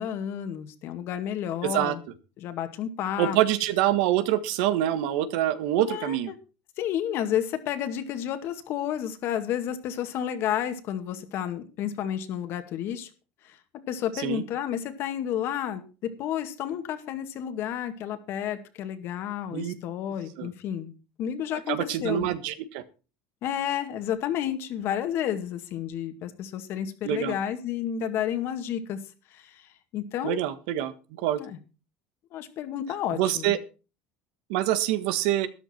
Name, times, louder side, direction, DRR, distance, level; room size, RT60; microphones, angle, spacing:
voice 1, 0.0-2.0 2.4-3.4 5.9-6.4 6.8-13.1 13.4-13.6 13.9-20.9 21.2-22.3 23.4-29.0 29.3-30.4 31.3-31.6 32.3-33.6, left 10 dB, 50° left, 8 dB, 2.1 m, -31 dB
voice 2, 1.6-1.9 3.2-6.3 14.2-14.4 19.5-19.7 20.4-20.5 21.7-22.8 27.0-27.3 30.2-30.9 31.2-31.4 33.1-33.6 34.5-35.5, right 12 dB, 80° right, 12 dB, 1.5 m, -25 dB
13.0 x 11.0 x 4.5 m, 0.34 s
cardioid pair, 140°, 5 cm